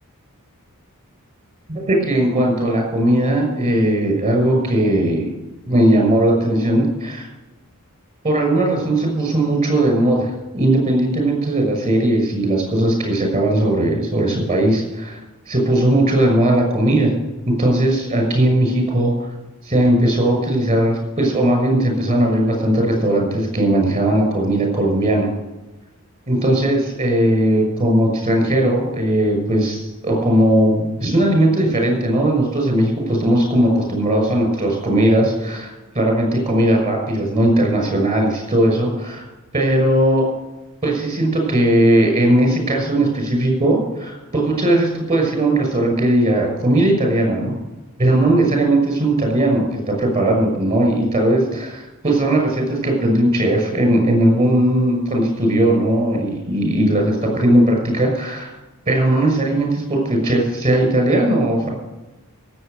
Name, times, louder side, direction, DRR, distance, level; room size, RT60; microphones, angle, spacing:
voice 1, 1.7-5.3 5.7-7.3 8.2-15.2 15.5-17.1 17.5-19.1 19.6-25.3 26.3-39.3 39.5-40.3 40.8-47.5 48.0-58.5 58.9-61.7, right 1 dB, 25° right, 2 dB, 6.2 m, -18 dB
17.0 x 8.1 x 6.7 m, 1.1 s
head